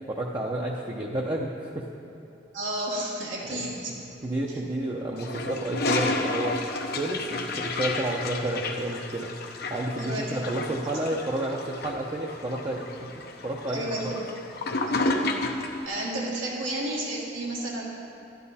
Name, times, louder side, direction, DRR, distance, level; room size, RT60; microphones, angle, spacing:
voice 1, 0.1-1.9 3.4-3.7 4.2-6.6 7.0-9.4 9.7-13.1 13.4-14.1, right 1 dB, 25° right, -3 dB, 0.6 m, -30 dB
voice 2, 2.5-3.9 4.5-4.6 9.9-10.4 10.7-10.8 13.7-14.4 14.8-15.1 15.8-17.8, right 1 dB, 85° right, -5 dB, 1.8 m, -32 dB
Toilet flush, 5.2-15.8, left 2 dB, 55° left, 0.7 m, -31 dB
12.0 x 11.0 x 4.2 m, 2.9 s
head